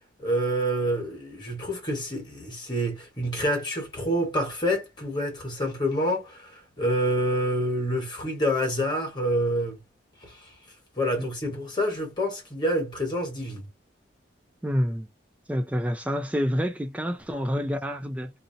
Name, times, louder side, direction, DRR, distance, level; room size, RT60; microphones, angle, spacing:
voice 1, 0.2-9.8 10.2-10.4 11.0-13.7, equal, 25° left, 1.2 m, -27 dB
voice 2, 14.6-15.1 15.5-18.3, equal, 5° right, 0.3 m, -27 dB
2.6 x 2.0 x 2.6 m
head